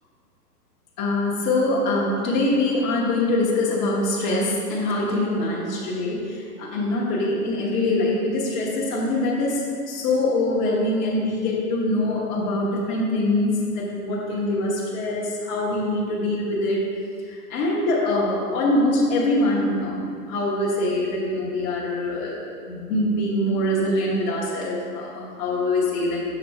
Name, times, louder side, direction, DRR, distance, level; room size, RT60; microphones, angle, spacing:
voice 1, 1.0-16.9 17.3-26.3, left 1 dB, 30° left, -5 dB, 1.0 m, -24 dB
6.0 x 4.2 x 4.3 m, 2.2 s
figure-of-eight pair, 120°, 47 cm